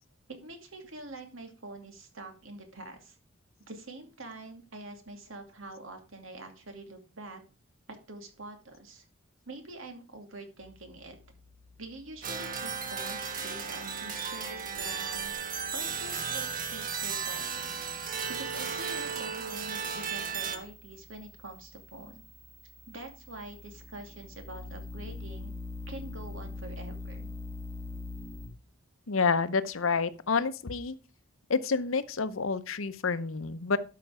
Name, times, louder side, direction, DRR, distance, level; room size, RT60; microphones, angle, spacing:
voice 1, 0.3-3.2 3.7-7.4 7.9-9.0 9.5-11.2 11.8-15.3 15.7-17.7 18.3-22.2 22.9-25.5 25.9-27.3, right 2 dB, 80° right, 5 dB, 2.5 m, -45 dB
sound 1, 10.6-28.5, left 3 dB, 25° right, 2.6 m, -46 dB
sound 2, 12.2-20.6, right 6 dB, 45° right, 1.6 m, -35 dB
voice 2, 29.1-30.9 31.5-33.8, left 5 dB, 85° left, 14 dB, 0.8 m, -28 dB
12.5 x 5.8 x 4.9 m, 0.34 s
head